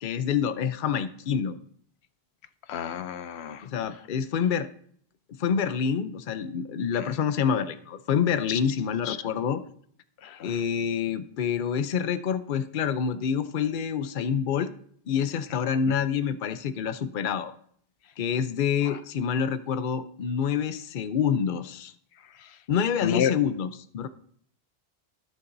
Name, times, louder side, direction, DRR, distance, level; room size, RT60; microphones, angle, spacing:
voice 1, 0.0-1.6 3.6-4.7 5.4-9.6 10.4-14.7 15.1-17.5 18.2-21.9 22.7-23.7 23.9-24.1, left 7 dB, 55° left, 11 dB, 0.8 m, -27 dB
voice 2, 2.7-3.7 8.5-8.6 9.1-9.2 10.2-10.6 18.9-19.0 23.0-23.3, left 9 dB, 90° left, 12 dB, 0.9 m, -30 dB
19.5 x 6.9 x 2.6 m, 0.63 s
omnidirectional pair, 1.0 m